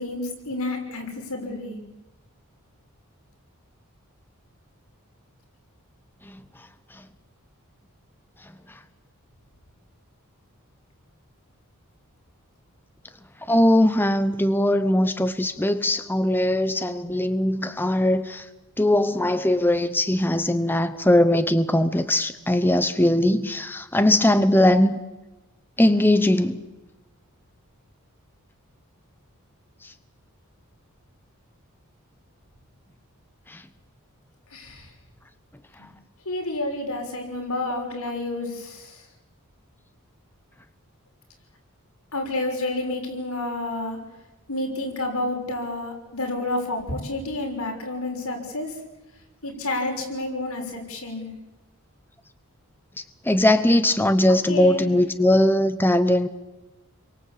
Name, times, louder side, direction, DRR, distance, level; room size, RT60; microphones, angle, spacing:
voice 1, 0.0-1.8 34.5-34.9 36.2-39.0 42.1-44.0 44.5-48.8 49.4-51.3 54.5-54.9, left 2 dB, 80° left, 2 dB, 6.5 m, -29 dB
voice 2, 13.5-18.5 18.8-25.0 25.8-26.6 29.8-29.9 33.5-33.6 53.2-56.3, left 1 dB, 10° left, 10 dB, 0.9 m, -20 dB
29.5 x 23.5 x 8.5 m, 1.0 s
head